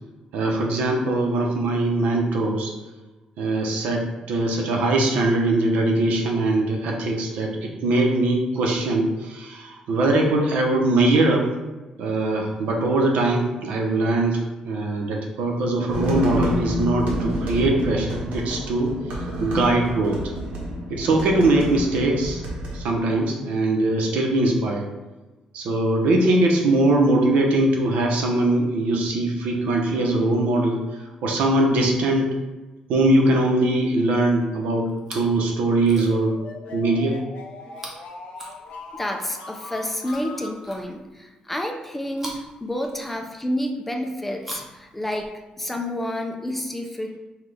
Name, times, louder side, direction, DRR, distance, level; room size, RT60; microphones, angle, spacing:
voice 1, 0.3-2.7 3.4-11.5 12.0-18.9 19.4-20.2 20.9-22.4 22.7-24.9 25.5-32.3 32.9-36.4 36.7-37.2, right 2 dB, 90° right, 1 dB, 0.8 m, -21 dB
sound 1, 15.9-22.8, left 1 dB, 70° right, 1.3 m, -28 dB
Chewing mastication, 34.9-35.4 35.8-36.4 37.7-39.1 40.0-41.3 42.1-43.4 44.3-45.7 46.6-46.7, right 1 dB, 15° right, 0.7 m, -43 dB
sound 2, 35.6-40.6, left 4 dB, 70° left, 0.7 m, -39 dB
voice 2, 38.9-47.2, left 1 dB, 10° left, 3 dB, 0.3 m, -29 dB
5.8 x 2.3 x 3.4 m, 1.1 s
cardioid pair, 170°, 2 cm